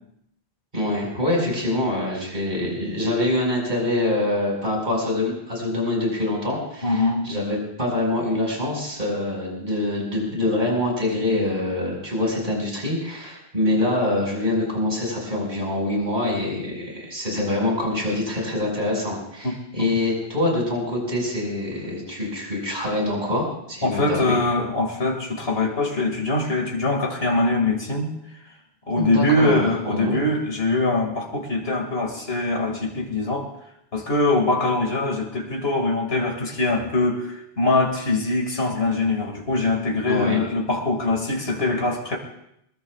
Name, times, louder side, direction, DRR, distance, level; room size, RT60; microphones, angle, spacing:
voice 1, 0.7-24.4 29.0-30.2 40.0-40.4, left 1 dB, 50° right, -1 dB, 5.6 m, -25 dB
voice 2, 6.8-7.3 19.4-20.0 23.8-28.1 28.9-33.5 33.9-42.2, left 2 dB, 70° left, 1 dB, 2.5 m, -23 dB
23.0 x 21.5 x 2.4 m, 0.76 s
omnidirectional pair, 1.1 m